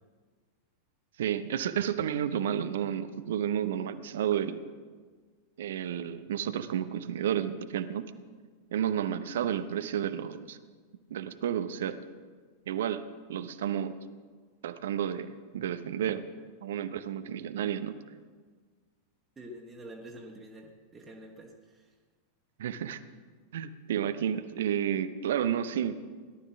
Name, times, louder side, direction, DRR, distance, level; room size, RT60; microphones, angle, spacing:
voice 1, 1.2-4.6 5.6-8.1 8.7-10.6 11.1-12.0 12.7-13.0 13.3-13.9 14.6-16.2 16.6-17.9 22.6-23.0 23.5-26.0, right 9 dB, 60° right, 12 dB, 0.8 m, -31 dB
voice 2, 19.3-21.9, right 1 dB, 15° right, 0 dB, 1.7 m, -47 dB
17.5 x 12.0 x 6.0 m, 1.5 s
figure-of-eight pair, 90°, 0 cm